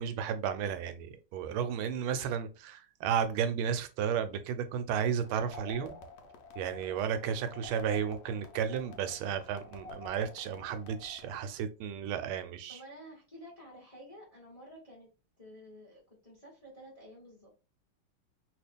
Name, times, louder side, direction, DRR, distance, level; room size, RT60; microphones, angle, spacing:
voice 1, 0.0-6.0 6.6-12.8, right 8 dB, 85° right, 1.4 m, -33 dB
sound 1, 5.2-11.4, left 4 dB, 75° left, 1.2 m, -49 dB
voice 2, 12.7-15.1 15.4-17.5, equal, 25° left, 0.9 m, -51 dB
3.0 x 2.9 x 3.4 m
omnidirectional pair, 2.2 m